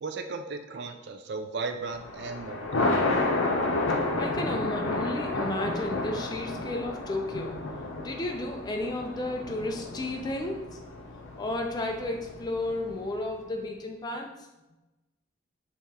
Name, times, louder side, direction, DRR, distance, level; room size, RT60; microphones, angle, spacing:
voice 1, 0.0-2.9, right 4 dB, 55° right, 7 dB, 0.3 m, -36 dB
Thunder, 1.9-13.2, left 2 dB, 90° left, 0.6 m, -31 dB
voice 2, 4.2-7.6 8.0-10.8 11.4-14.3, left 2 dB, 20° left, 2 dB, 0.3 m, -33 dB
4.3 x 2.9 x 3.5 m, 1.0 s
head